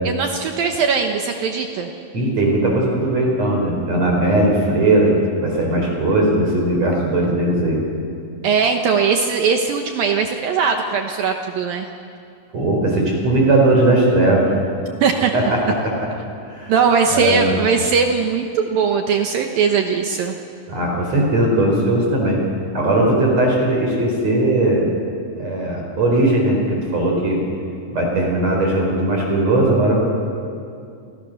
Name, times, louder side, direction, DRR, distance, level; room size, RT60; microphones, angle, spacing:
voice 1, 0.0-1.9 8.4-11.9 15.0-15.3 16.7-20.3, right 5 dB, 70° right, 3 dB, 2.8 m, -19 dB
voice 2, 2.1-7.8 12.5-14.5 15.3-15.9 16.5-16.7 17.1-17.5 20.7-22.4 22.7-24.9 25.4-27.4 27.9-30.0, right 1 dB, 40° right, -1 dB, 5.5 m, -18 dB
29.0 x 28.0 x 6.6 m, 2.5 s
omnidirectional pair, 4.7 m